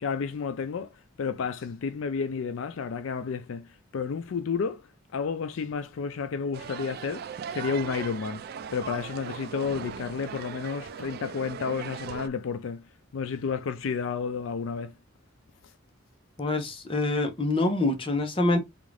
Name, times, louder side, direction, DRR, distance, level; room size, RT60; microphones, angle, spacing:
voice 1, 0.0-4.8 5.1-8.4 8.7-12.8 13.1-14.9, left 5 dB, 75° left, 0.4 m, -31 dB
sound 1, 6.5-12.3, right 7 dB, 50° right, 0.3 m, -39 dB
voice 2, 16.4-18.6, left 2 dB, 25° left, 0.9 m, -25 dB
3.7 x 2.5 x 3.2 m
head